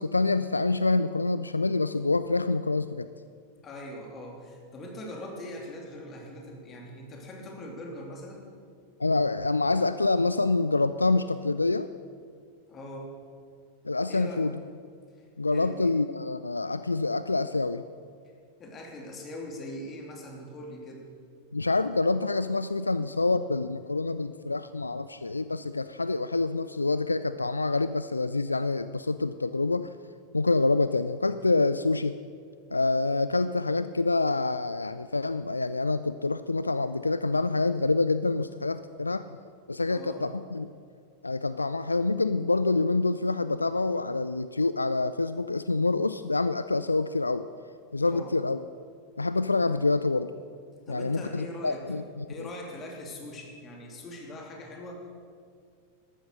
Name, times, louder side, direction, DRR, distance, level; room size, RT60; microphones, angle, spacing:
voice 1, 0.0-3.1 9.0-11.9 13.8-14.6 15.4-17.8 21.5-29.9 30.3-32.1 32.7-39.4 39.7-40.7 41.2-47.5 47.9-48.6 49.2-50.3 50.9-52.3, left 3 dB, 80° left, 13 dB, 0.3 m, -26 dB
voice 2, 3.6-8.4 12.7-13.1 14.0-14.4 15.2-15.3 15.5-16.0 18.6-21.0 39.9-40.2 48.0-48.4 50.9-51.9 52.3-55.1, left 1 dB, 25° left, 1 dB, 3.0 m, -41 dB
13.5 x 12.5 x 6.4 m, 2.2 s
figure-of-eight pair, 90°, 0 cm